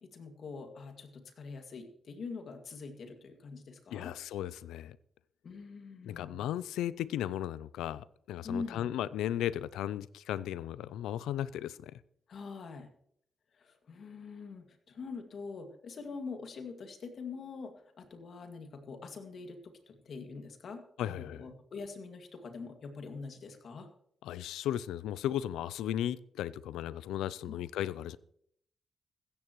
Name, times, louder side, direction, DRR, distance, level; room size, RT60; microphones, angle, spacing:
voice 1, 0.0-4.1 5.4-6.5 8.4-8.9 12.3-12.9 13.6-23.9 27.5-27.6, left 4 dB, 65° left, 5 dB, 2.2 m, -44 dB
voice 2, 3.9-5.0 6.0-12.0 21.0-21.4 24.2-28.2, left 11 dB, 90° left, 19 dB, 0.4 m, -36 dB
15.5 x 14.0 x 3.1 m, 0.68 s
supercardioid pair, 55°, 0 cm